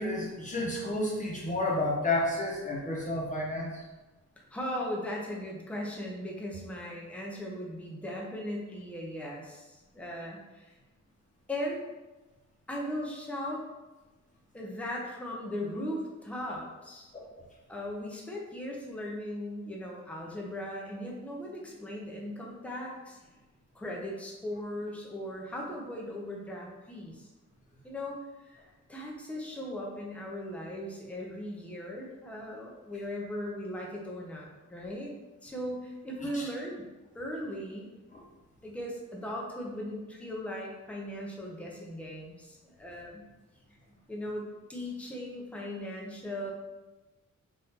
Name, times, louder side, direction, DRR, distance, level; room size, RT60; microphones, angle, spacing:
voice 1, 0.0-3.7 17.1-17.3 36.2-36.4 38.1-38.2, left 2 dB, 25° left, -4 dB, 0.8 m, -31 dB
voice 2, 4.5-10.7 11.5-11.9 12.7-13.6 14.5-17.1 17.7-23.2 23.7-27.3 27.8-28.6 28.9-35.1 35.4-36.9 37.1-37.9 38.6-43.3 44.1-46.5, left 1 dB, 5° left, -2 dB, 0.5 m, -38 dB
3.5 x 2.6 x 2.8 m, 1.1 s
wide cardioid pair, 130°, 31 cm